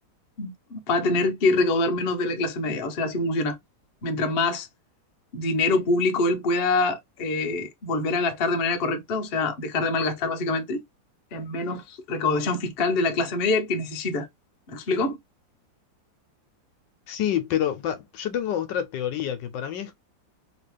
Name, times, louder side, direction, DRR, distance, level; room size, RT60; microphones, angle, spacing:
voice 1, 0.4-3.6 4.0-4.7 5.3-10.8 11.3-14.3 14.7-15.2, left 3 dB, 50° left, 0.7 m, -25 dB
voice 2, 17.1-20.0, left 10 dB, 75° left, 1.2 m, -28 dB
3.1 x 2.9 x 3.2 m
omnidirectional pair, 2.1 m